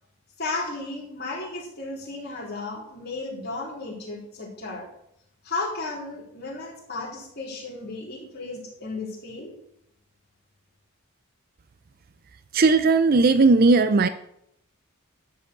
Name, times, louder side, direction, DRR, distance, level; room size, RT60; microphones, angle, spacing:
voice 1, 0.4-4.9 5.4-9.5, left 3 dB, 45° left, -3 dB, 3.7 m, -34 dB
voice 2, 12.5-14.1, right 3 dB, 45° right, 12 dB, 0.4 m, -17 dB
11.5 x 5.0 x 7.8 m, 0.76 s
head